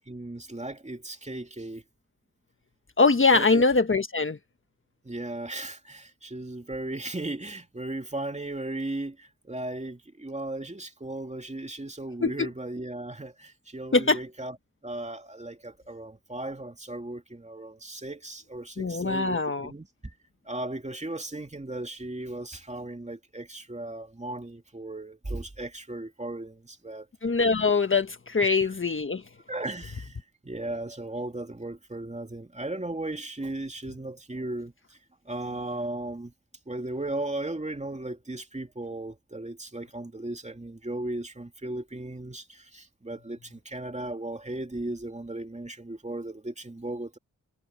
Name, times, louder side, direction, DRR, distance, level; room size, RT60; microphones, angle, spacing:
voice 1, 0.0-1.8 3.3-3.6 5.0-14.6 14.8-20.1 20.5-27.1 28.4-28.7 29.5-35.0 35.2-36.3 36.7-47.2, right 2 dB, 20° right, 2.8 m, -36 dB
voice 2, 3.0-4.4 12.2-12.5 13.9-14.2 18.8-19.7 27.2-29.2, left 4 dB, 35° left, 1.5 m, -23 dB
cardioid pair, 55°, 33 cm